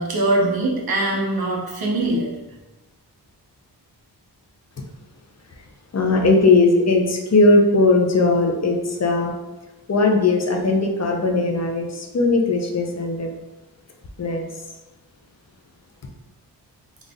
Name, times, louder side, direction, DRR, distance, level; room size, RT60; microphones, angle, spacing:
voice 1, 0.0-2.3, right 2 dB, 60° right, -2 dB, 0.9 m, -22 dB
voice 2, 5.9-9.3 9.9-13.3 14.2-14.5, left 3 dB, 40° left, 2 dB, 0.6 m, -18 dB
4.0 x 2.5 x 3.6 m, 1.1 s
wide cardioid pair, 85°, 41 cm